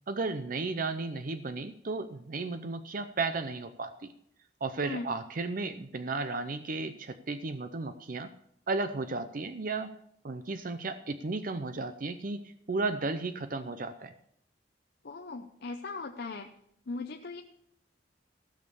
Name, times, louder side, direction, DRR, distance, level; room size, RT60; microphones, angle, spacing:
voice 1, 0.1-4.1 4.6-8.3 8.7-9.9 10.2-12.4 12.7-14.1, right 3 dB, 45° right, 10 dB, 0.6 m, -34 dB
voice 2, 15.0-16.5 16.9-17.4, left 3 dB, 60° left, 4 dB, 0.7 m, -38 dB
15.5 x 6.4 x 6.9 m, 0.72 s
head